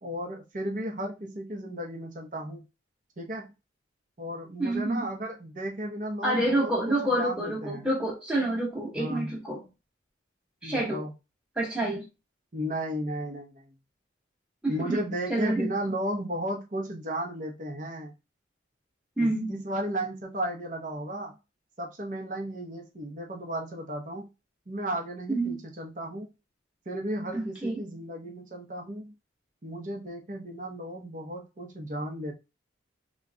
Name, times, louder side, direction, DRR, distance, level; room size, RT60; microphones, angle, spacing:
voice 1, 0.0-2.6 3.2-3.5 4.2-7.9 8.9-9.3 10.6-11.1 12.5-13.7 14.7-18.1 19.2-21.4 21.8-24.3 24.7-26.3 26.9-29.1 29.6-32.3, right 1 dB, 40° right, 0.8 m, -34 dB
voice 2, 4.6-5.1 6.2-9.6 10.6-11.0 11.6-12.1 14.6-15.0 15.3-15.7 19.2-19.5 25.3-25.6 27.3-27.8, right 1 dB, 5° right, 1.1 m, -28 dB
3.8 x 3.0 x 2.2 m
head